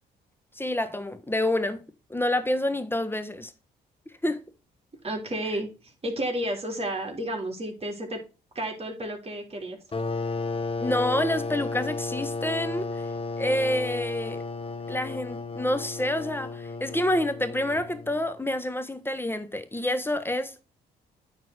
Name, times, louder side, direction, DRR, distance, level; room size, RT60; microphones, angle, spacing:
voice 1, 0.6-1.8 2.1-3.5 4.2-4.4 10.8-13.0 13.4-14.4 14.9-20.5, left 1 dB, 10° left, 1.4 m, -28 dB
voice 2, 5.0-8.2 8.6-9.8, right 1 dB, 30° right, 3.8 m, -32 dB
sound 1, 9.9-18.3, left 3 dB, 30° left, 1.2 m, -33 dB
9.2 x 4.1 x 6.5 m
supercardioid pair, 60°, 19 cm